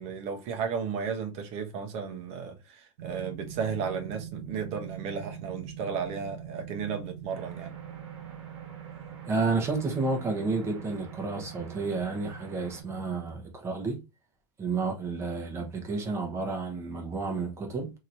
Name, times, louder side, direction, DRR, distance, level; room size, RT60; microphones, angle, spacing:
voice 1, 0.0-7.7, right 6 dB, 40° right, 0.8 m, -34 dB
sound 1, 3.0-13.3, right 9 dB, 90° right, 0.7 m, -43 dB
sound 2, 7.3-12.8, right 6 dB, 60° right, 1.2 m, -50 dB
voice 2, 9.2-14.0 14.6-17.9, right 3 dB, 15° right, 0.9 m, -31 dB
2.9 x 2.9 x 2.5 m
supercardioid pair, 150°, 16 cm